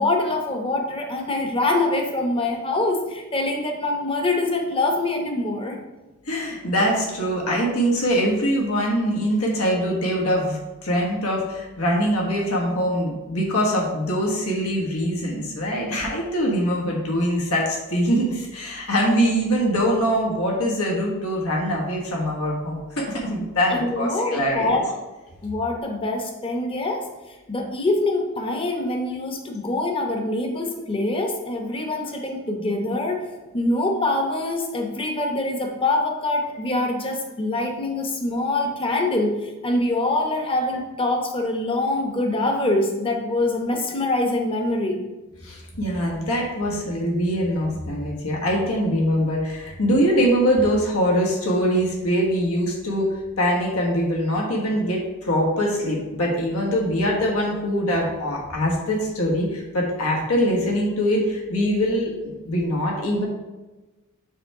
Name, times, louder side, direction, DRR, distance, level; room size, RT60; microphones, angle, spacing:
voice 1, 0.0-5.8 23.7-24.9 25.4-27.1 27.5-33.3 33.5-45.0, left 2 dB, 25° left, 2 dB, 0.8 m, -24 dB
voice 2, 6.2-24.8 45.4-63.2, equal, 80° left, -2 dB, 1.4 m, -23 dB
7.1 x 3.4 x 4.7 m, 1.1 s
head